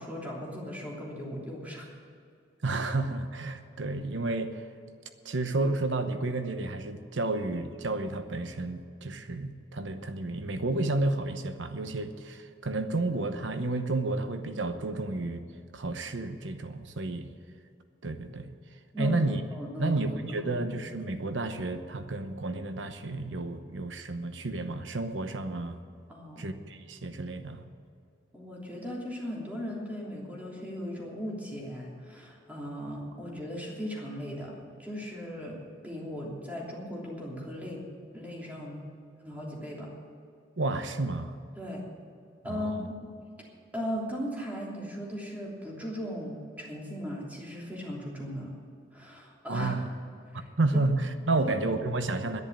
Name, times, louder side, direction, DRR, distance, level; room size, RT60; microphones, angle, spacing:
voice 1, 0.0-1.9 18.9-19.2 19.5-20.0 20.3-20.7 26.1-26.5 28.3-37.8 38.1-38.9 39.2-39.9 41.6-41.8 42.4-42.9 43.7-48.6 48.9-49.7 50.3-50.5 51.4-51.5, equal, 10° right, -3 dB, 3.1 m, -37 dB
voice 2, 2.6-4.7 5.2-15.4 15.7-17.3 18.0-18.5 19.0-19.4 19.8-25.8 26.4-27.6 40.6-41.4 42.5-42.9 49.5-49.9 50.3-52.4, right 2 dB, 75° right, 8 dB, 1.0 m, -31 dB
11.0 x 10.5 x 8.6 m, 2.4 s
head